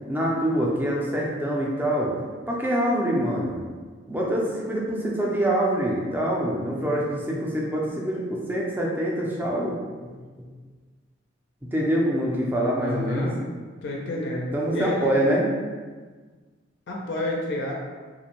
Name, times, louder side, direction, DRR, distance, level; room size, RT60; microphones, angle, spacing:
voice 1, 0.1-2.1 2.5-3.6 4.1-9.7 10.0-10.1 11.7-13.3 14.5-15.5, right 1 dB, 10° right, -3 dB, 0.4 m, -25 dB
voice 2, 12.8-13.4 13.8-15.1 16.9-17.7, left 1 dB, 65° left, -1 dB, 0.4 m, -29 dB
2.5 x 2.0 x 2.9 m, 1.4 s
head